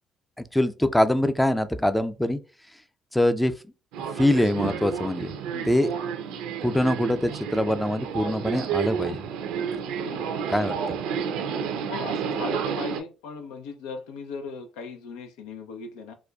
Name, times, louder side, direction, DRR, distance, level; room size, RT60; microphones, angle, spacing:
voice 1, 0.5-2.4 3.1-3.5 4.2-5.3 5.7-5.9 6.6-9.2 10.5-11.0, left 1 dB, 5° left, 0.4 m, -23 dB
Subway metro underground, 3.9-13.0, right 7 dB, 75° right, 0.5 m, -30 dB
voice 2, 9.9-10.3 11.9-16.1, left 4 dB, 80° left, 0.5 m, -38 dB
4.2 x 2.2 x 2.3 m
hypercardioid pair, 55°, 0 cm